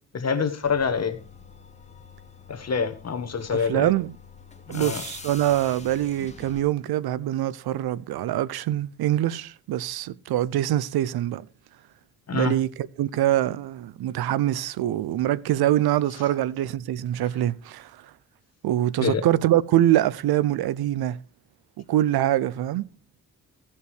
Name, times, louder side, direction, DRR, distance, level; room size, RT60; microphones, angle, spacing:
voice 1, 0.1-1.2 2.5-3.9 4.7-5.0 12.3-12.6 19.0-19.2, left 5 dB, 45° left, 1.5 m, -26 dB
sound 1, 0.6-6.6, left 4 dB, 20° left, 1.8 m, -44 dB
voice 2, 3.5-4.1 4.7-11.4 12.3-12.7 13.0-17.9 18.6-21.2 21.8-22.8, right 13 dB, 90° right, 0.6 m, -24 dB
15.5 x 5.4 x 4.9 m
cardioid pair, 80°, 36 cm